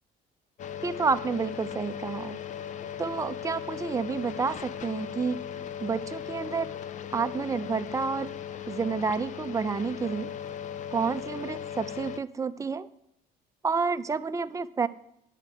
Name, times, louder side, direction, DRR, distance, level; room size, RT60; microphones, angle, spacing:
sound 1, 0.6-12.2, left 9 dB, 45° left, 0.5 m, -38 dB
voice 1, 0.8-2.4 3.0-5.4 5.8-6.7 7.1-8.3 8.7-10.3 10.9-12.9 13.6-14.9, right 5 dB, 20° right, 10 dB, 0.5 m, -29 dB
9.1 x 5.8 x 7.7 m, 0.75 s
cardioid pair, 110°, 17 cm